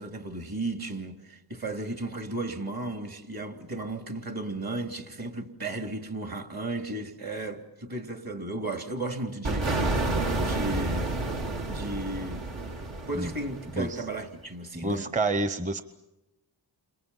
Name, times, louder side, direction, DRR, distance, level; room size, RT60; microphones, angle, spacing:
voice 1, 0.0-10.0 10.4-11.1 11.7-12.5 13.1-15.1, right 2 dB, 50° right, 3.1 m, -35 dB
sound 1, 9.4-14.1, right 2 dB, 70° right, 2.5 m, -30 dB
voice 2, 14.8-15.8, right 2 dB, 15° right, 0.9 m, -28 dB
30.0 x 27.5 x 5.7 m
cardioid pair, 65°, 47 cm